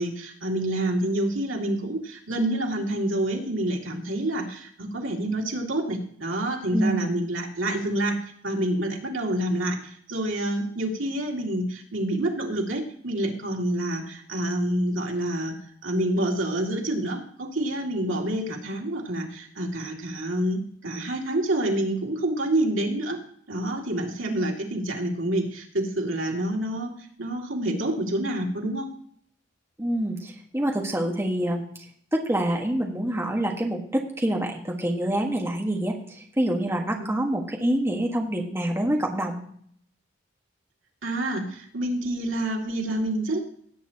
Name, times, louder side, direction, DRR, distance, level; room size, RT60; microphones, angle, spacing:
voice 1, 0.0-8.2 8.4-15.5 15.8-23.2 23.5-26.9 27.2-28.9 37.0-37.1 41.0-43.4, right 1 dB, 90° right, 0 dB, 2.4 m, -27 dB
voice 2, 6.7-7.1 29.8-31.6 32.1-35.9 36.4-39.4, right 1 dB, 15° right, 0 dB, 1.4 m, -26 dB
17.5 x 8.6 x 2.9 m, 0.62 s
head